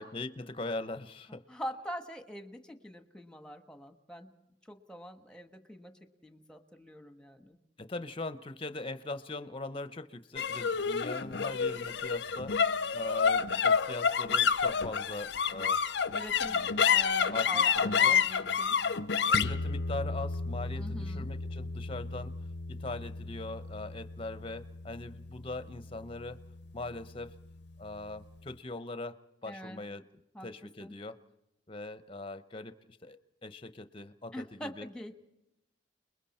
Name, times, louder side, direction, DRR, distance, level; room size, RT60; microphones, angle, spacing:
voice 1, 0.0-1.4 7.8-12.6 12.9-15.8 16.4-16.7 17.3-18.2 19.3-22.3 22.7-26.4 26.7-27.4 27.8-29.2 29.4-30.0 30.4-31.2 31.7-34.9, left 2 dB, 30° left, 11 dB, 0.8 m, -41 dB
voice 2, 1.3-4.3 4.6-7.6 16.1-18.8 20.8-21.3 29.5-29.8 30.3-30.5 30.8-30.9 34.3-35.1, equal, 5° left, 7 dB, 1.3 m, -44 dB
sound 1, 10.4-26.9, left 6 dB, 70° left, 0.6 m, -30 dB
30.0 x 21.0 x 4.3 m, 0.89 s
head